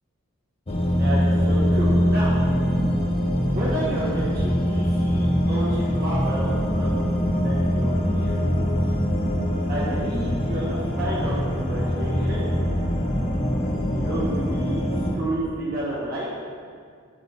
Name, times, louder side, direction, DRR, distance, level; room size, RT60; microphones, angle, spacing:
sound 1, 0.7-15.2, equal, 30° left, 0.6 m, -23 dB
voice 1, 1.0-2.3 3.5-6.9 7.4-8.5 8.8-8.9 9.7-12.5 13.9-16.3, right 1 dB, 45° right, -8 dB, 1.3 m, -31 dB
10.5 x 4.0 x 3.4 m, 2.1 s
head